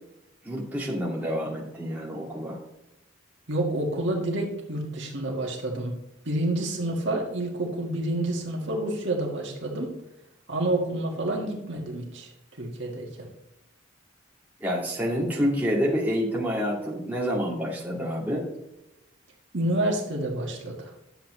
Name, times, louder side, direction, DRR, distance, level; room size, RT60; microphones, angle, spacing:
voice 1, 0.4-2.6 14.6-18.5, equal, 10° right, -5 dB, 2.3 m, -28 dB
voice 2, 3.5-6.0 6.2-10.0 10.5-12.3 12.6-13.3 19.5-20.9, right 1 dB, 65° right, 0 dB, 1.8 m, -28 dB
10.0 x 7.5 x 3.2 m, 0.90 s
head